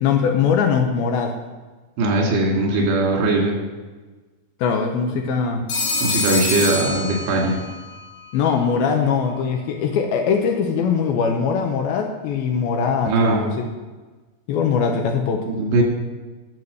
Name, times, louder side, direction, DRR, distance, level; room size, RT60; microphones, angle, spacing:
voice 1, 0.0-1.3 4.6-5.6 8.3-13.7 14.5-15.5, left 6 dB, 80° left, 3 dB, 2.4 m, -21 dB
voice 2, 2.0-3.6 6.0-7.6 13.1-13.4 15.5-15.8, right 2 dB, 85° right, -1 dB, 4.2 m, -20 dB
Telephone, 5.7-7.8, left 2 dB, 50° left, 3.7 m, -24 dB
10.5 x 6.8 x 6.6 m, 1.3 s
omnidirectional pair, 4.9 m